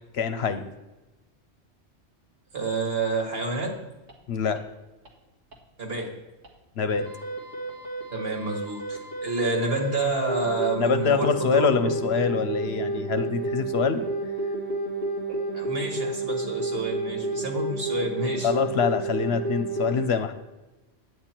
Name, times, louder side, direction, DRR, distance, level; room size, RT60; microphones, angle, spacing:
voice 1, 0.1-0.7 4.3-4.6 6.8-7.1 10.8-14.0 18.4-20.3, left 6 dB, 65° left, 10 dB, 0.9 m, -25 dB
voice 2, 2.5-3.8 5.8-6.1 8.1-11.9 15.5-18.5, right 2 dB, 55° right, 2 dB, 1.9 m, -29 dB
sound 1, 3.6-3.7 4.1-4.2 4.6-4.7 5.1-5.2 5.5-5.6 6.0-6.1 6.4-6.5 6.9-20.0, right 2 dB, 85° right, 2.0 m, -31 dB
9.1 x 8.8 x 4.4 m, 1.1 s
omnidirectional pair, 1.2 m